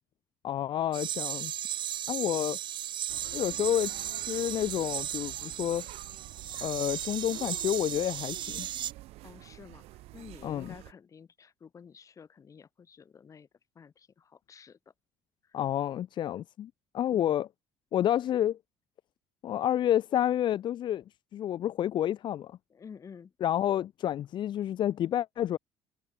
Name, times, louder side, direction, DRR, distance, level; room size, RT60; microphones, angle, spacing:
voice 1, 0.4-1.5 2.1-2.6 3.3-5.8 6.6-8.7 10.4-10.7 15.5-17.5 17.9-18.6 19.4-21.0 21.3-22.6 23.4-25.6, left 11 dB, 50° left, 1.0 m, -29 dB
sound 1, 0.9-8.9, right 10 dB, 50° right, 3.1 m, -36 dB
sound 2, 3.1-10.9, right 18 dB, 80° right, 2.9 m, -49 dB
voice 2, 9.2-13.5 13.8-14.8 15.4-15.6 17.1-17.4 22.7-23.3, left 6 dB, 30° left, 6.9 m, -51 dB
cardioid pair, 140°, 10 cm